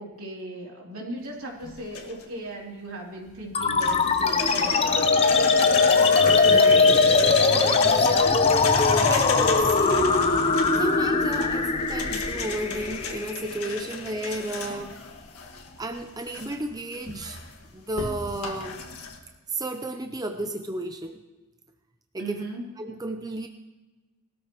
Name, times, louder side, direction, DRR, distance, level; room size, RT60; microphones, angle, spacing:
voice 1, 0.0-5.1 14.7-14.8 22.2-22.6, right 1 dB, 70° right, -2 dB, 3.2 m, -37 dB
sound 1, 1.6-2.4 3.8-19.2, left 5 dB, 85° left, 1.7 m, -36 dB
sound 2, 3.5-14.5, left 4 dB, 25° left, 0.7 m, -23 dB
sound 3, 4.3-12.9, left 4 dB, 45° left, 1.5 m, -23 dB
voice 2, 6.4-8.5 9.1-10.4 10.8-15.0 15.8-17.4 17.7-18.8 19.5-21.2 22.1-22.4 22.8-23.5, right 1 dB, 15° right, 6 dB, 0.5 m, -33 dB
19.5 x 13.0 x 3.0 m, 1.2 s
head